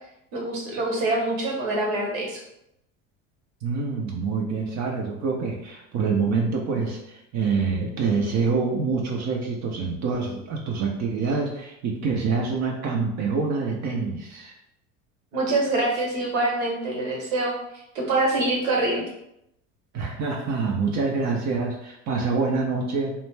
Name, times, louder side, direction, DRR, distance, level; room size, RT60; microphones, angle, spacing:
voice 1, 0.3-2.4 15.3-17.6 17.9-19.0, right 2 dB, 75° right, -1 dB, 1.0 m, -25 dB
voice 2, 3.6-14.5 19.9-23.1, right 4 dB, 45° right, 0 dB, 0.6 m, -26 dB
2.4 x 2.2 x 3.2 m, 0.81 s
hypercardioid pair, 75°, 40 cm